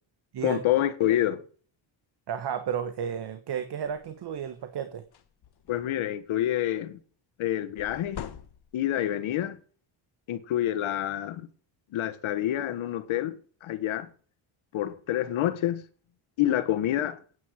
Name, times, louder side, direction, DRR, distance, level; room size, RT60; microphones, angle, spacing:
voice 1, 0.4-1.4 5.7-7.0 7.4-8.2 8.7-9.6 10.3-11.5 11.9-14.1 14.7-15.8 16.4-17.2, left 12 dB, 75° left, 1.7 m, -27 dB
voice 2, 2.3-5.0, right 8 dB, 55° right, 1.4 m, -32 dB
sound 1, 3.8-4.1 4.6-4.7 5.0-6.1 7.8-9.0, left 9 dB, 50° left, 1.5 m, -43 dB
9.7 x 7.8 x 6.5 m
cardioid pair, 105°, 49 cm